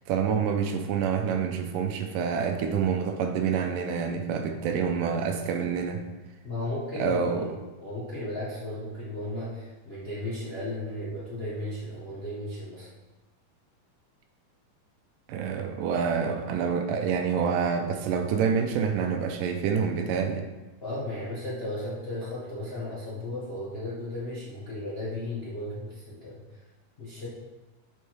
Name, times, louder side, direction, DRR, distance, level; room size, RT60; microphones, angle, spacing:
voice 1, 0.1-6.0 7.0-7.5 15.3-20.5, right 6 dB, 85° right, 4 dB, 2.3 m, -27 dB
voice 2, 6.4-7.5 7.8-12.9 20.8-26.4 27.0-27.3, left 1 dB, 45° left, -8 dB, 0.8 m, -35 dB
8.2 x 4.5 x 4.7 m, 1.1 s
omnidirectional pair, 3.8 m